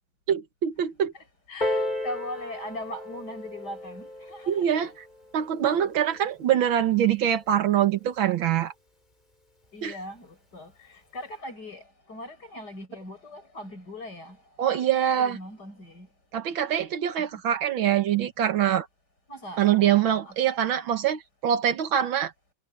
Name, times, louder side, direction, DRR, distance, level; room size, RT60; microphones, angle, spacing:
voice 1, 0.3-1.1 4.5-5.0 5.3-8.7 9.8-9.9 14.6-15.4 16.3-18.9 19.6-22.3, right 10 dB, 80° right, 2.0 m, -24 dB
voice 2, 1.1-4.7 6.8-6.9 9.7-14.4 15.0-16.1 17.2-17.3 19.3-19.7 20.3-20.5, left 1 dB, 55° left, 8.4 m, -40 dB
Piano, 1.6-6.8 7.6-7.7, left 1 dB, 20° left, 4.6 m, -35 dB
omnidirectional pair, 2.1 m